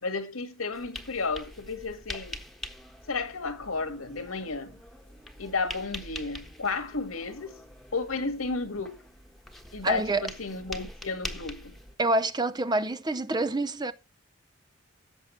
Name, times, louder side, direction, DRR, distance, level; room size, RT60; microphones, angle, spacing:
voice 1, 0.0-2.4 3.1-4.8 5.4-7.6 7.9-9.0 9.7-11.7, left 4 dB, 90° left, 1.9 m, -32 dB
sound 1, 0.7-12.0, left 1 dB, ahead, 1.3 m, -44 dB
voice 2, 9.8-10.2 12.0-13.9, right 2 dB, 20° right, 0.6 m, -27 dB
16.5 x 7.3 x 3.3 m
head